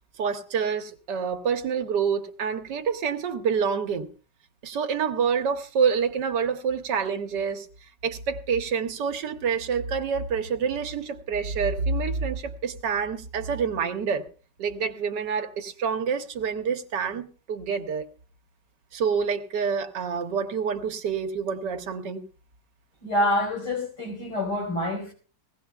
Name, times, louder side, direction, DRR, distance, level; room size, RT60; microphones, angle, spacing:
voice 1, 0.2-4.1 4.6-7.7 8.0-14.3 14.6-18.1 18.9-22.2, right 6 dB, 85° right, 1.6 m, -27 dB
voice 2, 23.0-25.1, left 1 dB, 85° left, 5.9 m, -26 dB
20.0 x 16.5 x 2.3 m
omnidirectional pair, 1.8 m